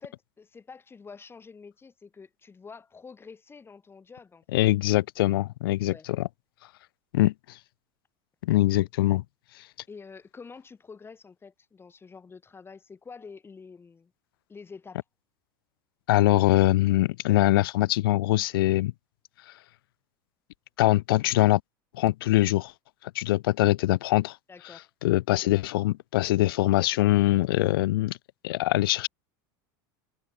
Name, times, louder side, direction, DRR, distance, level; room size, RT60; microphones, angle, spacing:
voice 1, 0.0-4.6 5.9-6.1 9.9-14.1 14.5-15.0 24.5-24.9, left 5 dB, 20° left, 7.4 m, -47 dB
voice 2, 4.5-6.3 7.1-7.6 8.4-9.2 16.1-18.9 20.8-21.6 22.0-22.7 23.1-24.4 25.0-28.2 28.4-29.1, left 17 dB, 85° left, 0.5 m, -23 dB
supercardioid pair, 110°, 12 cm